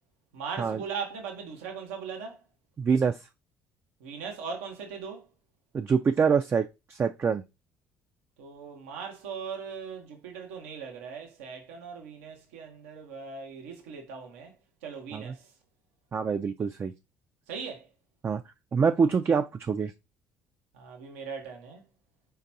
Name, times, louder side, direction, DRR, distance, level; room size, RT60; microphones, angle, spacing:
voice 1, 0.3-2.4 4.0-5.3 8.4-14.5 14.8-15.5 17.5-17.9 20.7-21.8, right 6 dB, 85° right, 1.0 m, -39 dB
voice 2, 2.8-3.2 5.7-7.4 15.1-15.3 16.1-16.9 18.2-18.4 18.7-19.9, right 6 dB, 35° right, 0.4 m, -25 dB
4.4 x 3.8 x 2.7 m
hypercardioid pair, 60°, 7 cm